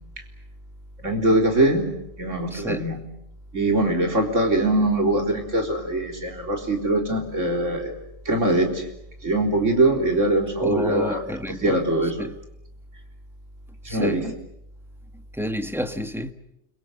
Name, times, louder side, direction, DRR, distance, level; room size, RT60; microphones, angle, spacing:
voice 1, 1.0-1.9 2.2-3.0 3.5-7.9 8.3-8.8 9.2-11.2 11.5-12.2 13.8-14.3, right 1 dB, 70° right, 4.2 m, -22 dB
voice 2, 2.5-2.9 10.6-11.8 12.2-12.4 13.8-14.3 15.3-16.3, equal, ahead, 1.3 m, -30 dB
29.5 x 23.0 x 8.1 m
omnidirectional pair, 1.3 m